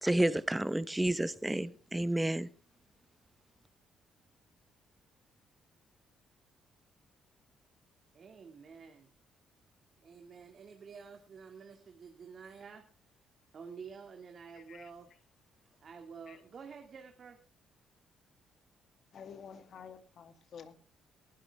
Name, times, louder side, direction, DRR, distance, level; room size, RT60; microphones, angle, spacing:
voice 1, 0.0-2.5, right 1 dB, 10° right, 1.1 m, -30 dB
voice 2, 8.1-9.1 10.0-12.8 13.5-15.1 15.8-17.4, right 6 dB, 50° right, 2.2 m, -50 dB
voice 3, 14.5-14.9 16.3-16.4 19.1-20.7, left 7 dB, 60° left, 2.3 m, -50 dB
18.5 x 13.0 x 3.5 m
cardioid pair, 90°, 0 cm